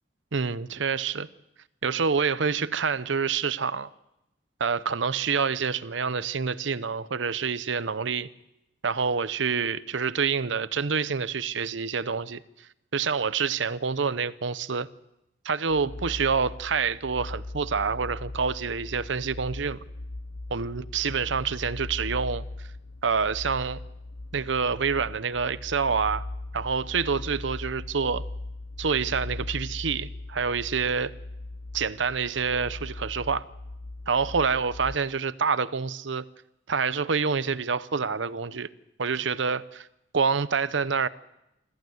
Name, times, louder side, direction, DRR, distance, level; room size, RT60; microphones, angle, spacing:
voice 1, 0.3-1.3 1.8-3.9 4.6-8.3 8.8-12.4 12.9-14.9 15.4-19.8 20.5-22.7 23.0-23.8 24.3-26.2 26.5-28.2 28.8-31.1 31.7-33.4 34.1-36.2 36.7-38.7 39.0-39.9 40.1-41.1, right 5 dB, 80° right, 0.8 m, -27 dB
sound 1, 15.7-35.0, left 2 dB, 75° left, 0.9 m, -39 dB
25.0 x 14.5 x 8.0 m
head